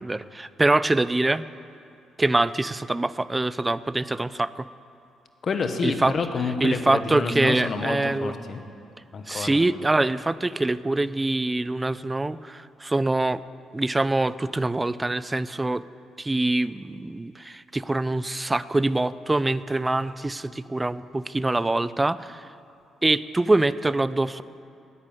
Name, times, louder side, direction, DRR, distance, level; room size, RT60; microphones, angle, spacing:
voice 1, 0.0-1.5 2.2-4.7 5.8-6.2 6.6-8.3 9.3-13.4 13.7-15.8 16.2-22.5 23.0-24.4, right 2 dB, 15° right, 17 dB, 0.3 m, -24 dB
voice 2, 5.4-8.6 9.1-9.6, left 4 dB, 50° left, 7 dB, 1.2 m, -28 dB
9.8 x 9.7 x 9.1 m, 2.5 s
cardioid pair, 90°, 0 cm